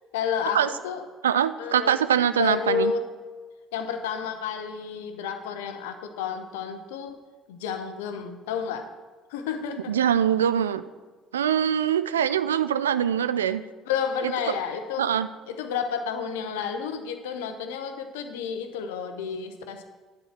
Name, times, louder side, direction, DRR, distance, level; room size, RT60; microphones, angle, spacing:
voice 1, 0.1-1.1 1.6-3.1 3.7-7.2 7.5-8.9 9.3-10.0 13.9-15.1 15.5-19.8, left 7 dB, 75° left, 7 dB, 0.9 m, -31 dB
voice 2, 1.2-2.9 9.9-10.8 11.3-13.6 14.5-14.6 15.0-15.3, right 9 dB, 80° right, 13 dB, 0.3 m, -23 dB
10.0 x 4.8 x 7.4 m, 1.4 s
figure-of-eight pair, 55°, 0 cm